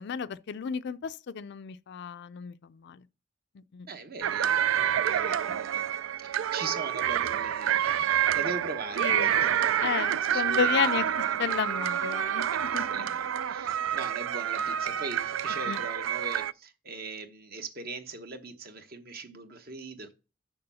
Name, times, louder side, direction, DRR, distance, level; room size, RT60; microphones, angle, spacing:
voice 1, 0.0-3.0 3.7-3.9 5.2-5.3 9.0-9.3 9.8-11.1 11.4-12.5 12.7-13.1 15.7-15.8, left 7 dB, 60° left, 0.4 m, -32 dB
voice 2, 3.9-4.7 5.0-5.9 6.2-11.0 11.3-11.6 12.5-20.1, right 3 dB, 55° right, 1.1 m, -41 dB
sound 1, 4.2-16.5, right 9 dB, 90° right, 0.3 m, -28 dB
6.8 x 6.2 x 5.5 m
head